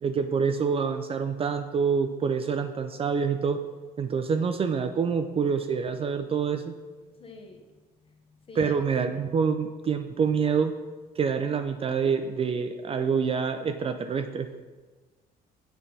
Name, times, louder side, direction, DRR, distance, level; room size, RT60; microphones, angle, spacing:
voice 1, 0.0-3.6 4.0-6.7 8.6-10.7 11.2-14.5, right 6 dB, 35° right, 8 dB, 0.4 m, -26 dB
voice 2, 7.1-8.7, left 2 dB, 35° left, 3 dB, 1.0 m, -48 dB
7.6 x 3.4 x 5.4 m, 1.3 s
cardioid pair, 110°, 17 cm